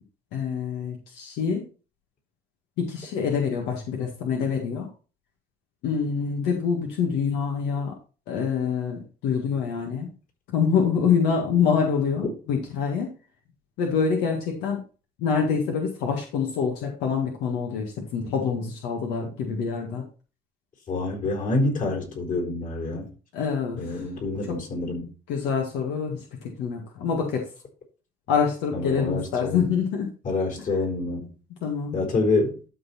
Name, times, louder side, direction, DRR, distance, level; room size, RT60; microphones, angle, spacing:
voice 1, 0.3-1.6 2.8-4.9 5.8-7.9 8.3-10.1 10.5-13.1 13.8-14.8 15.2-20.0 23.3-24.0 24.4-24.6 25.3-27.5 28.3-30.1 30.7-30.8 31.6-32.0, left 6 dB, 90° left, 1.8 m, -26 dB
voice 2, 20.9-23.1 23.8-25.1 28.7-29.7 30.2-31.3 31.9-32.6, left 2 dB, 50° left, 4.0 m, -27 dB
12.0 x 4.1 x 4.3 m
cardioid pair, 110°, 17 cm